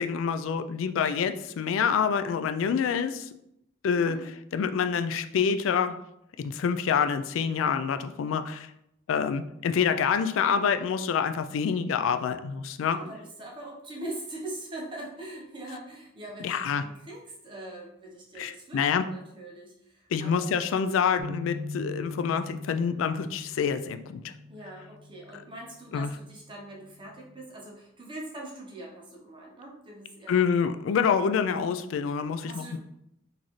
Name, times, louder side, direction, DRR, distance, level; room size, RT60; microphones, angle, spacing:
voice 1, 0.0-3.3 3.8-4.2 4.5-6.0 6.4-8.7 9.1-13.0 16.4-16.8 18.4-19.0 20.1-24.2 25.9-26.1 30.3-32.8, left 6 dB, 85° left, 10 dB, 0.3 m, -27 dB
voice 2, 12.9-20.7 24.5-30.4 32.5-32.8, right 1 dB, 25° right, -2 dB, 0.8 m, -42 dB
sound 1, 21.2-25.4 25.9-26.2 27.0-27.4, left 2 dB, 65° right, 0.4 m, -41 dB
3.9 x 2.6 x 3.0 m, 0.80 s
head